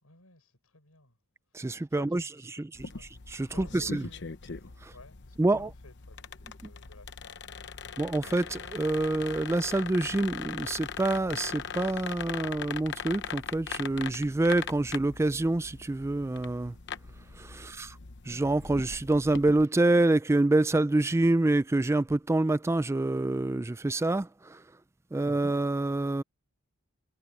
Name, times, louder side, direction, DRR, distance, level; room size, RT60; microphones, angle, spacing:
voice 1, 0.0-1.2 1.5-3.1 3.5-4.4 4.9-7.5 17.6-17.9, left 2 dB, 80° left, 5.9 m, -55 dB
voice 2, 1.5-2.2 3.3-4.0 4.8-4.9 5.4-5.7 8.0-16.7 17.4-18.0 18.3-24.6 25.1-26.2, right 2 dB, 10° right, 0.3 m, -27 dB
sound 1, 2.7-19.6, left 6 dB, 55° left, 1.0 m, -41 dB
head